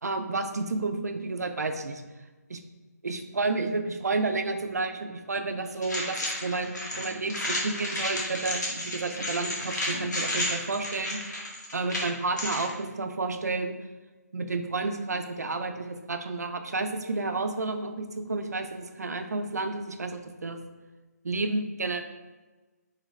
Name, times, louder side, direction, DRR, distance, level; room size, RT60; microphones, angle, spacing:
voice 1, 0.0-2.0 2.5-2.6 3.0-13.8 14.3-20.6 21.2-22.0, right 3 dB, 70° right, 7 dB, 0.5 m, -31 dB
sound 1, 5.8-12.7, left 1 dB, 85° left, 1.4 m, -32 dB
3.9 x 3.8 x 3.2 m, 1.2 s
hypercardioid pair, 180°, 9 cm